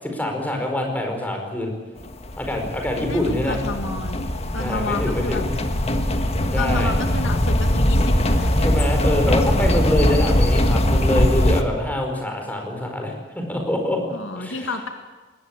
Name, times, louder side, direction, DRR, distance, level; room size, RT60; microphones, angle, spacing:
voice 1, 0.0-1.7 2.4-3.6 4.6-5.5 6.5-6.9 8.6-14.0 14.4-14.7, left 1 dB, 10° left, 3 dB, 4.8 m, -25 dB
sound 1, 2.0-11.6, left 1 dB, 35° left, 1.6 m, -21 dB
voice 2, 3.1-4.3 4.5-5.4 6.6-8.5 14.1-14.9, left 3 dB, 90° left, 5 dB, 1.9 m, -30 dB
21.0 x 19.0 x 8.8 m, 1.3 s
head